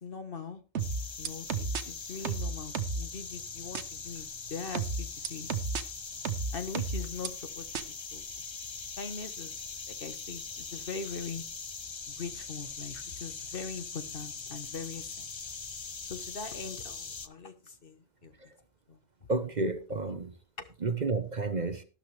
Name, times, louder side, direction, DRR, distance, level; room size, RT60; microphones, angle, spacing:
voice 1, 0.0-0.6 1.2-5.5 6.5-8.2 9.0-9.5 9.9-11.4 12.1-15.2 16.1-18.3 18.9-19.0 20.6-20.7, left 5 dB, 50° left, 1.4 m, -41 dB
sound 1, 0.8-17.3, left 4 dB, 30° left, 0.6 m, -42 dB
sound 2, 0.8-1.8 2.3-3.1 3.8-3.9 4.8-5.8 6.3-7.3 7.8-7.9, right 5 dB, 75° right, 1.2 m, -32 dB
voice 2, 19.3-20.3 20.8-21.8, right 3 dB, 40° right, 1.0 m, -31 dB
12.5 x 12.0 x 3.3 m
omnidirectional pair, 1.2 m